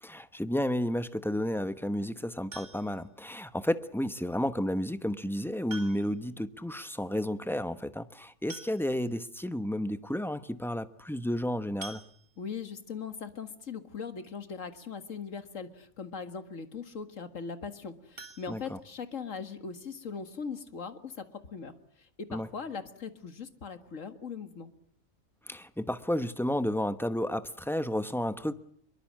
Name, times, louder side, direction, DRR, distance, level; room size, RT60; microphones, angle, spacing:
voice 1, 0.0-12.0 18.5-18.8 22.3-22.5 25.5-28.5, left 1 dB, ahead, 0.9 m, -32 dB
sound 1, 2.5-3.1 4.6-4.7 5.7-6.3 6.6-6.7 7.0-7.1 8.1-8.2 8.5-9.2 9.8-9.9 10.2-10.4 11.8-12.6 18.1-19.3 19.7-19.8 20.2-20.3 20.7-20.8, right 3 dB, 35° right, 2.1 m, -47 dB
voice 2, 12.4-21.7 22.2-24.7, left 5 dB, 70° left, 2.1 m, -40 dB
24.5 x 23.0 x 7.5 m
omnidirectional pair, 1.4 m